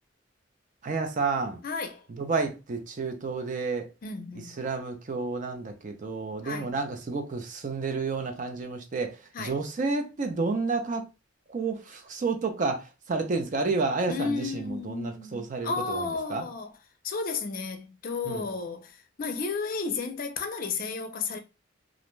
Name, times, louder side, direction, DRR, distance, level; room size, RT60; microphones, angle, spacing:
voice 1, 0.8-1.6 2.1-3.9 4.4-11.1 11.5-16.4 18.3-18.4, right 4 dB, 40° right, 0.4 m, -30 dB
voice 2, 1.6-2.1 4.0-4.6 6.4-6.7 9.3-9.6 14.1-16.7 17.0-21.4, left 4 dB, 45° left, 0.5 m, -33 dB
2.5 x 2.1 x 3.0 m
head